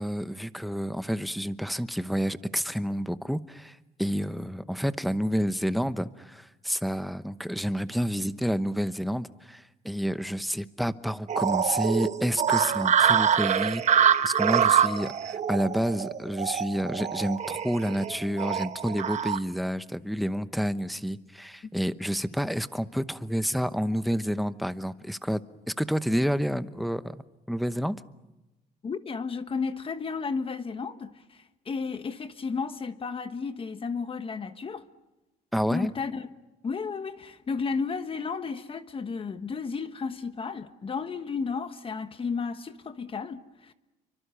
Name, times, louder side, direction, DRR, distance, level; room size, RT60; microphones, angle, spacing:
voice 1, 0.0-25.4 25.7-27.2 27.5-28.0 35.5-35.9, equal, ahead, 0.9 m, -29 dB
sound 1, 11.3-19.4, right 8 dB, 45° right, 1.0 m, -25 dB
voice 2, 28.8-34.8 35.7-36.3 36.6-43.7, left 5 dB, 35° left, 1.3 m, -33 dB
29.5 x 24.5 x 7.0 m
cardioid pair, 110°, 17 cm